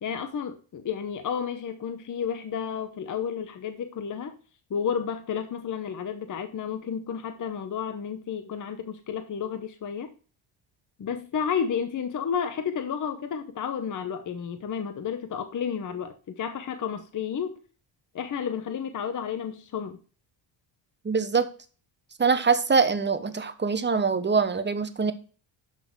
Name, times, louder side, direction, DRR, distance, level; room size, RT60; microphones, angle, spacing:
voice 1, 0.0-4.4 4.7-10.1 11.0-17.6 18.1-20.0, left 7 dB, 40° left, 8 dB, 0.9 m, -31 dB
voice 2, 21.0-21.5 22.2-25.1, right 5 dB, 20° right, 11 dB, 0.9 m, -23 dB
11.5 x 4.1 x 4.6 m, 0.38 s
cardioid pair, 100°, 48 cm